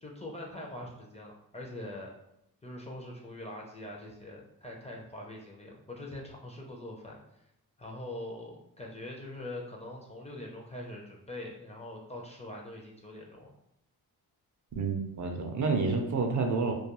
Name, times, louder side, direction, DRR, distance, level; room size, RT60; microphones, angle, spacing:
voice 1, 0.0-2.1 2.6-7.2 7.8-13.5, left 1 dB, 15° left, -2 dB, 0.4 m, -43 dB
voice 2, 14.8-16.7, right 4 dB, 50° right, 3 dB, 0.5 m, -29 dB
2.3 x 2.2 x 2.9 m, 0.81 s
cardioid pair, 90°, 39 cm